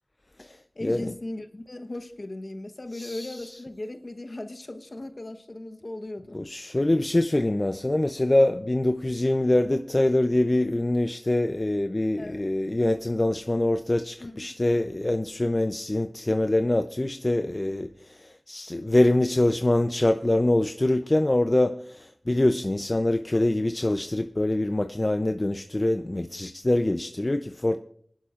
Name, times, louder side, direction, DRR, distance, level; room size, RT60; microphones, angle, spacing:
voice 1, 0.7-6.4 12.2-12.5 14.2-14.6, left 2 dB, 55° left, 1.0 m, -37 dB
voice 2, 2.9-3.4 6.3-17.9 18.2-27.8, left 1 dB, 35° left, 0.5 m, -24 dB
24.5 x 11.5 x 2.5 m
wide cardioid pair, 60°, 0 cm